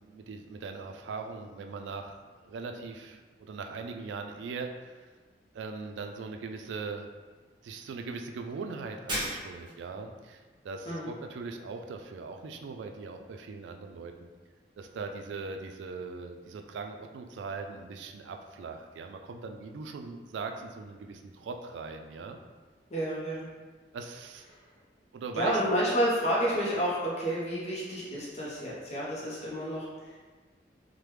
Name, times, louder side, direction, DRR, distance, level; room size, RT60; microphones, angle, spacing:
voice 1, 0.0-5.1 5.5-7.1 7.6-14.3 14.8-22.4 23.9-24.5 25.1-25.6, right 4 dB, 90° right, 5 dB, 0.3 m, -40 dB
Shatter, 9.1-9.9, equal, 25° right, 0.8 m, -34 dB
voice 2, 22.9-23.5 24.5-24.6 25.3-30.2, equal, 40° left, -7 dB, 0.6 m, -30 dB
3.2 x 2.1 x 3.1 m, 1.4 s
head